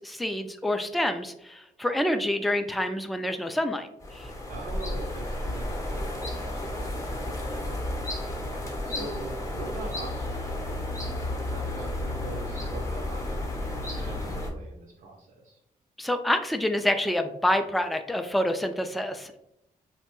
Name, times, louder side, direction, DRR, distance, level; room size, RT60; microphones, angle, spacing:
voice 1, 0.0-4.3 16.0-19.4, left 1 dB, ahead, 7 dB, 0.3 m, -27 dB
sound 1, 4.0-14.5, left 1 dB, 20° left, 0.7 m, -32 dB
voice 2, 4.5-8.2 8.8-10.6 11.4-15.6, right 2 dB, 80° right, -2 dB, 0.5 m, -42 dB
2.9 x 2.1 x 2.9 m, 0.80 s
supercardioid pair, 55°, 16 cm